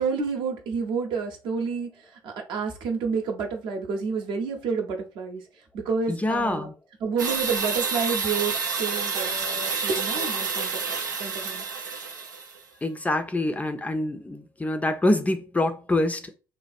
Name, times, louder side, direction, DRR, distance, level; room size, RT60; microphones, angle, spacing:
voice 1, 0.0-1.9 2.2-5.4 5.7-6.7 7.0-11.7, right 5 dB, 55° right, 0.8 m, -29 dB
voice 2, 6.1-6.7 12.8-16.3, left 1 dB, 15° left, 0.5 m, -25 dB
sound 1, 7.2-12.6, right 5 dB, 80° right, 0.4 m, -29 dB
3.2 x 2.3 x 2.6 m
figure-of-eight pair, 55°, 10 cm